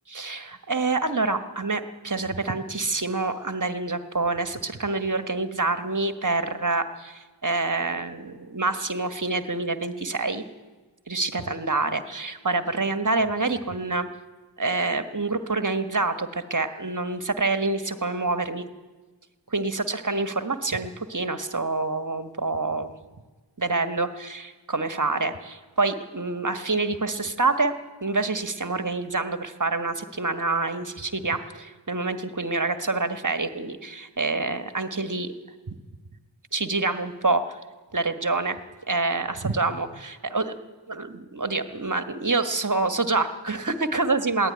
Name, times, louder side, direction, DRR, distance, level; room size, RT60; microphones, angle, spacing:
voice 1, 0.1-10.4 11.1-14.1 14.6-18.6 19.5-22.9 23.6-27.7 28.0-35.3 35.7-35.8 36.5-37.6 37.9-38.6 38.9-40.6 40.9-44.5, right 3 dB, 40° right, 9 dB, 1.5 m, -27 dB
21.5 x 17.0 x 9.7 m, 1.3 s
wide cardioid pair, 55°, 46 cm